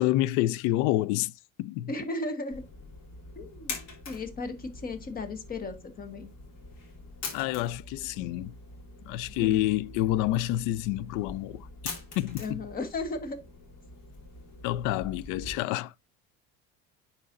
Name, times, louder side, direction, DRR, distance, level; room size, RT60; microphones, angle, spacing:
voice 1, 0.0-1.3 1.6-1.9 7.3-8.5 9.1-11.7 12.2-12.6 14.6-15.9, left 15 dB, 75° left, 0.4 m, -28 dB
voice 2, 1.9-2.6 3.4-3.8 4.1-6.3 9.3-9.6 12.4-13.4, left 3 dB, 30° left, 1.2 m, -35 dB
sound 1, 2.5-15.6, left 3 dB, 55° left, 2.5 m, -44 dB
9.5 x 4.2 x 2.6 m
cardioid pair, 140°, 31 cm